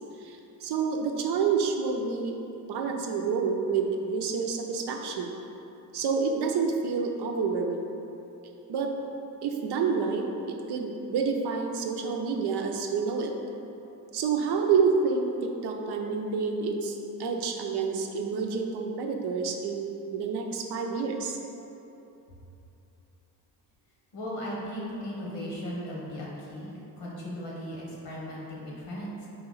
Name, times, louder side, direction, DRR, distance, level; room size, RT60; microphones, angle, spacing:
voice 1, 0.2-2.4 2.7-5.3 5.9-7.8 8.7-8.9 9.4-13.3 14.1-21.4, right 5 dB, 70° right, 3 dB, 0.6 m, -28 dB
voice 2, 24.1-29.3, equal, 85° left, -5 dB, 1.1 m, -37 dB
3.9 x 2.8 x 3.9 m, 2.9 s
supercardioid pair, 50°, 42 cm